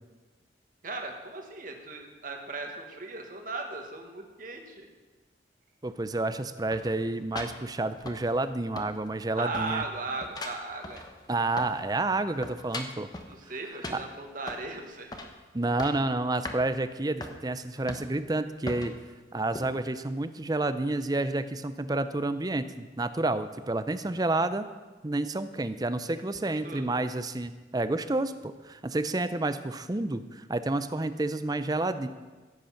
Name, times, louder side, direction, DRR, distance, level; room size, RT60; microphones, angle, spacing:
voice 1, 0.8-4.9 9.4-11.0 13.3-15.1 26.1-26.9, right 3 dB, 50° right, 3 dB, 1.7 m, -37 dB
voice 2, 5.8-9.8 11.3-13.1 13.9-14.0 15.5-18.9 19.3-24.7 25.0-32.1, right 2 dB, 20° right, 12 dB, 0.5 m, -29 dB
sound 1, 6.7-8.5 8.8-9.3 9.5-11.9 12.2-13.3 13.8-14.7 15.1-15.4 15.6-16.1 16.4-16.6 17.2-17.4 17.9-18.3 18.7-19.0 19.5-19.7, left 2 dB, 25° left, 1.0 m, -40 dB
15.5 x 8.2 x 5.8 m, 1.3 s
head